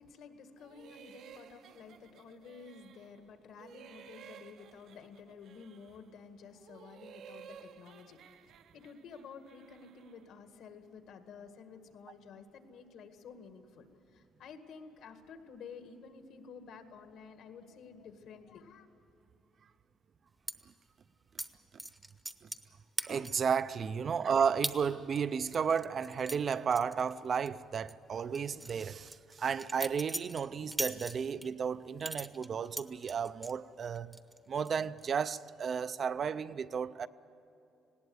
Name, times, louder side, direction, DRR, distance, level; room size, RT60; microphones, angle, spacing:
voice 1, 0.0-18.9, left 5 dB, 70° left, 1.8 m, -52 dB
sound 1, 0.6-3.2 3.5-6.1 6.5-10.3, right 8 dB, 60° right, 0.8 m, -55 dB
sound 2, 20.5-20.6 21.4-21.5 21.8-22.7 23.0-23.5 23.9-24.0 24.6-24.8 25.2-27.5 27.7-27.9 28.3-31.5 32.0-33.5 33.9-34.4 34.6-35.0, right 1 dB, 5° right, 0.8 m, -40 dB
voice 2, 23.0-34.2 34.5-37.1, right 6 dB, 35° right, 0.4 m, -33 dB
19.5 x 17.5 x 9.6 m
cardioid pair, 155°, 0 cm